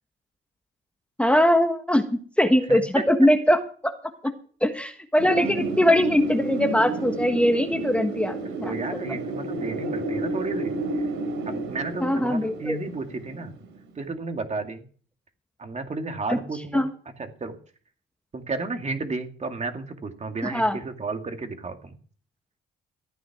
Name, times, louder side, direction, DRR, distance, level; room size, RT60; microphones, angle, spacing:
voice 1, 1.2-3.9 4.2-4.3 4.6-8.7 12.0-12.8 16.3-16.4 16.7-16.9 20.4-20.8, equal, 5° left, 6 dB, 1.5 m, -21 dB
voice 2, 2.7-3.0 5.3-5.5 8.6-11.0 11.5-13.6 14.0-14.9 15.6-16.8 17.2-17.6 18.3-22.0, right 3 dB, 35° right, 5 dB, 2.4 m, -33 dB
Wind, 5.2-13.9, right 2 dB, 90° right, 3.4 m, -31 dB
14.5 x 9.4 x 6.0 m, 0.44 s
cardioid pair, 90°, 20 cm